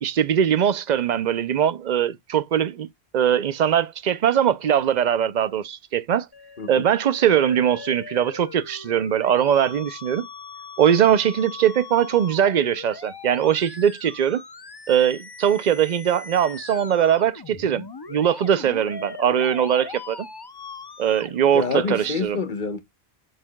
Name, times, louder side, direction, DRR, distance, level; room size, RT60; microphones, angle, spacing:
voice 1, 0.0-2.9 3.1-6.3 6.7-10.3 10.8-14.4 14.9-20.2 21.0-22.4, right 9 dB, 50° right, 0.6 m, -21 dB
Musical instrument, 6.3-22.3, left 4 dB, 30° left, 0.6 m, -40 dB
voice 2, 21.5-22.8, left 4 dB, 50° left, 1.2 m, -27 dB
11.0 x 4.8 x 2.2 m
omnidirectional pair, 1.1 m